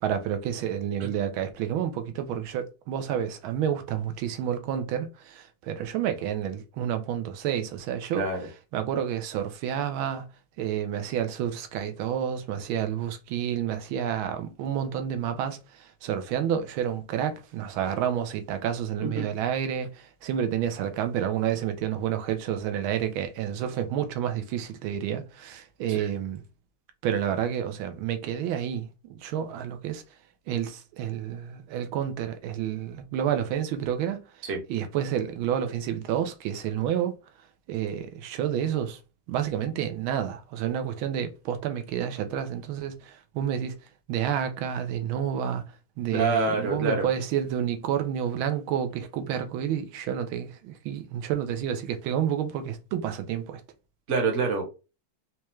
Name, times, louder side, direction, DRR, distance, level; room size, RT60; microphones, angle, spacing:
voice 1, 0.0-8.2 8.7-10.3 10.6-26.4 27.0-30.0 30.5-37.1 37.7-39.0 39.3-43.8 44.1-45.6 46.0-53.6, right 9 dB, 90° right, 1.4 m, -29 dB
voice 2, 8.1-8.5 19.0-19.3 25.9-26.1 34.4-34.6 46.1-47.1 54.1-54.7, right 3 dB, 45° right, 1.1 m, -26 dB
4.3 x 2.3 x 3.0 m
omnidirectional pair, 2.2 m